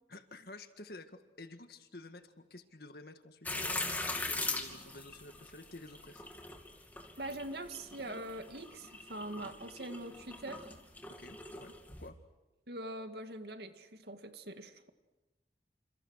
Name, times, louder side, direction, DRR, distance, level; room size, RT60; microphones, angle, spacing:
voice 1, 0.1-3.9 4.3-6.2 11.2-11.7 12.0-12.2, left 2 dB, 60° left, 8 dB, 1.9 m, -51 dB
sound 1, 3.5-12.1, left 2 dB, 10° left, 2.6 m, -41 dB
voice 2, 7.2-10.7 12.7-14.9, right 1 dB, 70° right, 7 dB, 2.1 m, -43 dB
29.0 x 28.0 x 6.5 m, 1.1 s
head